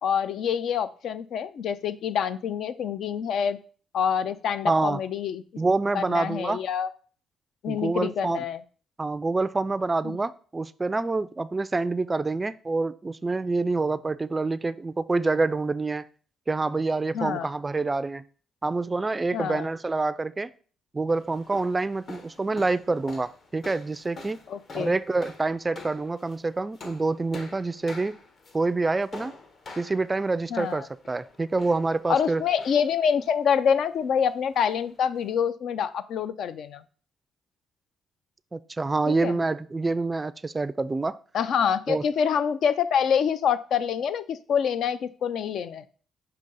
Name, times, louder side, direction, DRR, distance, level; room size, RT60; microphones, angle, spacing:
voice 1, 0.0-3.6 3.9-5.4 5.9-6.9 7.6-8.6 10.0-10.2 17.1-17.5 19.3-19.7 24.5-25.0 30.5-30.9 32.1-36.8 39.1-39.4 41.3-45.9, left 7 dB, 70° left, 13 dB, 0.4 m, -26 dB
voice 2, 4.7-5.0 5.6-6.6 7.7-8.4 9.0-16.0 16.5-18.2 18.6-20.5 20.9-24.4 24.8-28.2 28.5-29.3 29.8-32.4 38.5-41.2 41.9-42.0, right 3 dB, 20° right, 15 dB, 0.3 m, -27 dB
sound 1, 21.1-35.3, left 3 dB, 50° left, 1.2 m, -47 dB
6.6 x 2.8 x 5.4 m, 0.42 s
cardioid pair, 90°, 0 cm